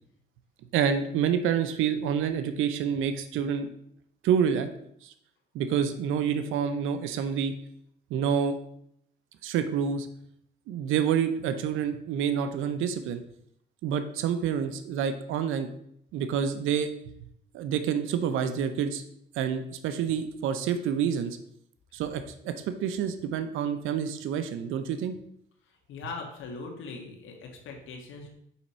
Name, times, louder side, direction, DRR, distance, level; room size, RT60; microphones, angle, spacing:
voice 1, 0.7-3.7 4.2-4.7 5.0-5.1 5.5-7.5 8.1-8.6 9.4-10.1 10.7-13.2 13.8-15.7 16.1-16.9 17.5-19.0 19.3-21.4 21.9-25.2, right 8 dB, 90° right, 9 dB, 0.6 m, -28 dB
voice 2, 25.9-28.3, left 4 dB, 80° left, 1 dB, 1.4 m, -40 dB
5.6 x 4.1 x 5.5 m, 0.72 s
cardioid pair, 90°, 20 cm